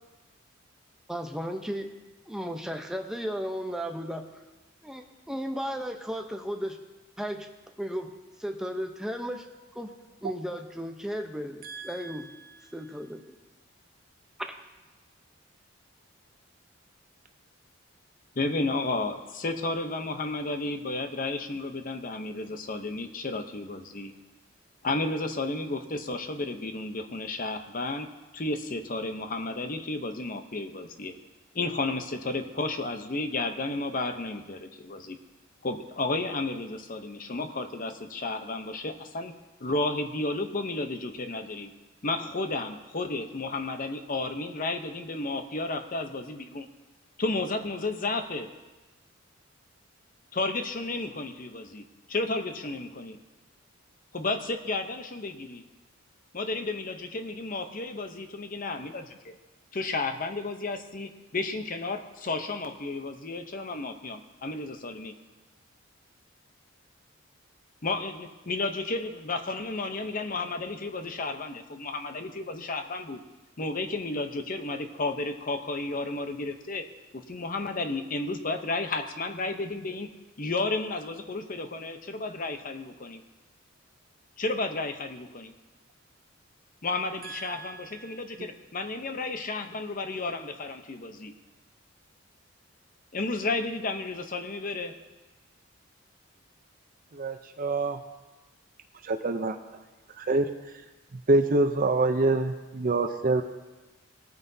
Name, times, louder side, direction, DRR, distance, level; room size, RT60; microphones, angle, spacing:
voice 1, 1.1-1.9 2.3-4.3 4.8-6.8 7.2-7.5 7.8-8.1 8.4-9.5 9.7-9.9 10.2-12.3 12.7-13.3 14.4-14.6, equal, 5° right, 4 dB, 0.7 m, -34 dB
voice 2, 18.4-24.1 24.8-28.1 28.3-31.1 31.5-35.2 35.6-39.3 39.6-41.7 42.0-46.7 47.2-48.5 50.3-53.2 54.1-55.6 56.3-59.3 59.7-65.1 67.8-73.2 73.6-76.8 77.3-80.1 80.4-83.2 84.4-85.5 86.8-91.3 93.1-94.9, left 2 dB, 40° left, 7 dB, 0.8 m, -32 dB
voice 3, 97.1-98.0 99.0-99.6 100.2-100.5 101.3-103.4, right 2 dB, 45° right, 6 dB, 0.6 m, -25 dB
20.0 x 9.3 x 2.7 m, 1.2 s
head